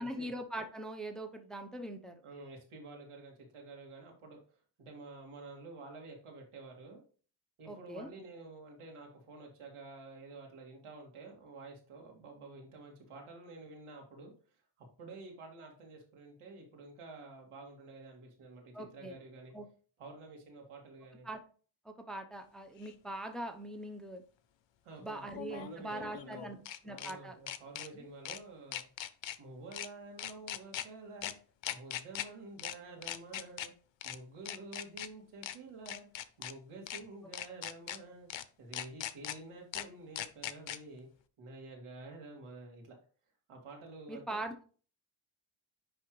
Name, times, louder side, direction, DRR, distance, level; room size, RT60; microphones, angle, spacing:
voice 1, 0.0-2.2 7.7-8.1 18.7-19.2 19.5-19.7 21.2-21.4 21.8-24.2 25.0-26.6 26.8-27.3 27.9-28.1 44.1-44.6, right 1 dB, ahead, 5 dB, 0.7 m, -42 dB
voice 2, 2.2-7.0 7.6-14.3 14.8-19.5 20.0-21.3 24.8-28.9 29.4-31.4 31.7-33.7 34.0-36.1 36.4-38.3 38.6-41.1 41.4-43.0 43.5-44.4, right 3 dB, 80° right, 1 dB, 2.4 m, -50 dB
sound 1, 22.8-22.9 25.3-27.1 27.5-27.9 28.3-28.4 28.7-29.4 29.7-29.9 30.2-30.9 31.2-31.3 31.6-32.3 32.6-32.7 33.0-33.7 34.0-34.2 34.5-35.1 35.4-35.6 35.9-36.5 36.9-37.0 37.3-38.0 38.3-38.4 38.7-39.4 39.7-39.8 40.2-40.8, left 11 dB, 65° left, 0.7 m, -40 dB
9.9 x 3.5 x 3.2 m, 0.40 s
cardioid pair, 100°, 50 cm